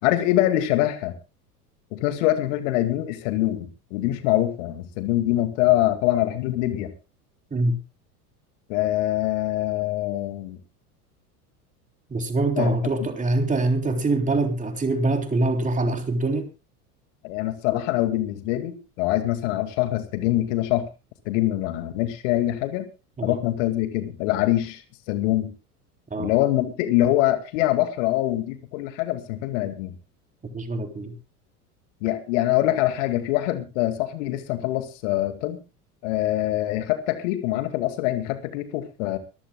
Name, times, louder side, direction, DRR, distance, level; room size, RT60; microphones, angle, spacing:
voice 1, 0.0-1.1 1.9-6.9 8.7-10.6 12.6-12.7 17.2-20.9 21.3-22.9 23.2-24.8 25.1-25.5 26.2-29.9 32.0-35.6 36.0-39.2, left 14 dB, 50° left, 9 dB, 2.3 m, -24 dB
voice 2, 12.1-16.5 23.2-23.4 26.1-26.3 30.5-31.1, right 2 dB, 15° right, 5 dB, 3.5 m, -24 dB
24.0 x 15.0 x 2.3 m, 0.30 s
figure-of-eight pair, 80°, 46 cm